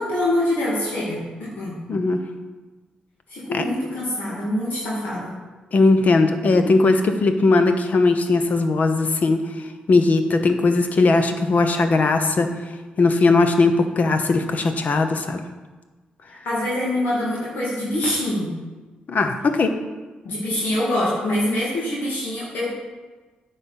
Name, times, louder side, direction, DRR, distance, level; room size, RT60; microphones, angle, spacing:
voice 1, 0.0-1.8 3.3-5.3 16.3-18.5 20.2-22.7, left 1 dB, 85° left, -6 dB, 2.3 m, -25 dB
voice 2, 1.9-2.2 3.5-3.6 5.7-9.4 9.9-12.5 13.0-15.4 19.1-19.7, left 3 dB, 55° left, 7 dB, 1.0 m, -18 dB
9.6 x 5.5 x 5.6 m, 1.3 s
cardioid pair, 80°, 3 cm